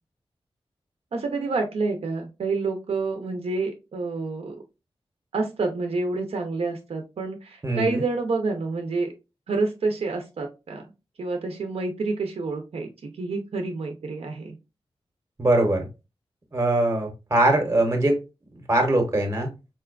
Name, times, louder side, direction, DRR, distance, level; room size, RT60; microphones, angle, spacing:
voice 1, 1.1-4.5 5.3-9.1 9.5-10.9 11.2-14.6, right 3 dB, 75° right, 0.5 m, -28 dB
voice 2, 7.6-8.0 15.4-15.9 16.5-18.2 18.7-19.5, right 1 dB, 25° right, 0.7 m, -21 dB
4.2 x 2.2 x 2.3 m
wide cardioid pair, 100°, 10 cm